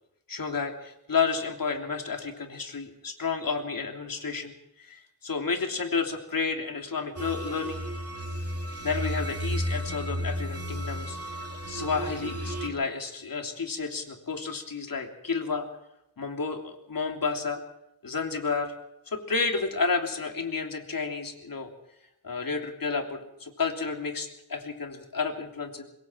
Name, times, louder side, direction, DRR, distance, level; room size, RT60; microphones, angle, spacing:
voice 1, 0.3-7.8 8.8-11.2 11.7-15.7 16.2-17.6 18.0-18.7 19.1-21.7 22.2-25.8, left 4 dB, 65° left, 3 dB, 3.3 m, -31 dB
sound 1, 7.2-12.7, equal, 40° right, 2.8 m, -33 dB
26.5 x 21.5 x 4.7 m, 0.84 s
wide cardioid pair, 100°, 36 cm